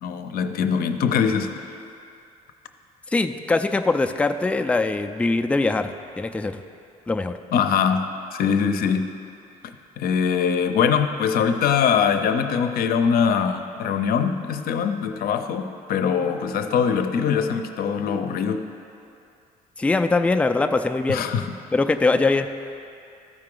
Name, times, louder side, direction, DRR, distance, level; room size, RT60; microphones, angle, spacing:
voice 1, 0.0-1.7 7.5-9.1 10.0-18.7 21.1-21.5, left 7 dB, 65° left, 8 dB, 0.6 m, -22 dB
voice 2, 3.1-6.6 7.1-7.3 19.8-21.2 21.7-22.5, left 3 dB, 5° left, 7 dB, 0.3 m, -22 dB
13.5 x 4.8 x 3.8 m, 2.5 s
cardioid pair, 110°, 17 cm